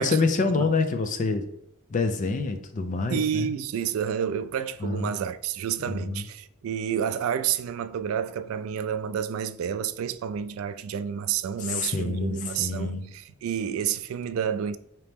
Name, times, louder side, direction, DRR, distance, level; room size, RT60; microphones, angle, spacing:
voice 1, 0.0-1.5 1.9-3.5 4.8-5.1 5.9-6.2 11.6-13.1, left 3 dB, 40° left, 0.4 m, -27 dB
voice 2, 3.1-13.0 13.4-14.8, right 8 dB, 85° right, 0.3 m, -29 dB
4.1 x 2.9 x 3.4 m
head